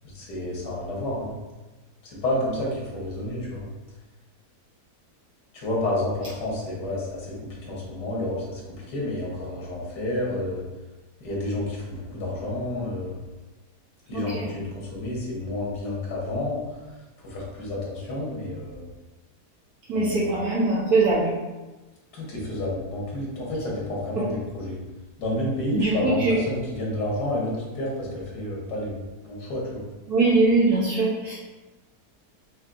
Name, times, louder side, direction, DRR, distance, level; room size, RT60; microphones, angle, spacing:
voice 1, 0.1-1.3 2.0-3.7 5.5-7.3 7.6-10.6 11.2-13.2 14.1-16.8 17.2-18.9 19.9-20.2 22.1-24.8 25.2-29.8, left 1 dB, 85° left, -4 dB, 1.9 m, -30 dB
voice 2, 14.1-14.5 19.9-21.3 24.2-24.3 25.7-26.4 30.1-31.3, right 3 dB, 70° right, -8 dB, 1.4 m, -22 dB
6.3 x 3.0 x 2.6 m, 1.2 s
omnidirectional pair, 1.7 m